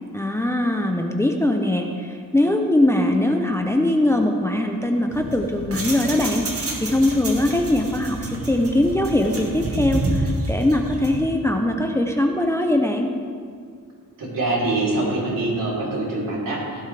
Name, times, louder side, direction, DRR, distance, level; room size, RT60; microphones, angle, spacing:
voice 1, 0.1-13.1, left 1 dB, 10° left, 3 dB, 0.6 m, -21 dB
sound 1, 5.1-11.3, right 2 dB, 40° right, 1.7 m, -29 dB
voice 2, 14.2-16.8, right 2 dB, 65° right, -5 dB, 3.7 m, -24 dB
16.0 x 11.0 x 3.4 m, 2.1 s
wide cardioid pair, 135°, 35 cm